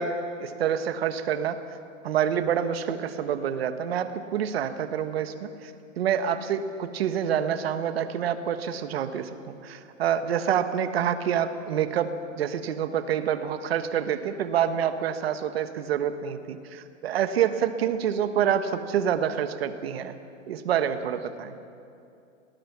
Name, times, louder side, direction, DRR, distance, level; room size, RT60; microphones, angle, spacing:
voice 1, 0.0-1.6 2.0-5.7 6.0-12.1 12.4-20.1 20.5-21.5, right 8 dB, 50° right, 9 dB, 1.4 m, -27 dB
26.0 x 19.0 x 6.1 m, 2.6 s
hypercardioid pair, 170°, 38 cm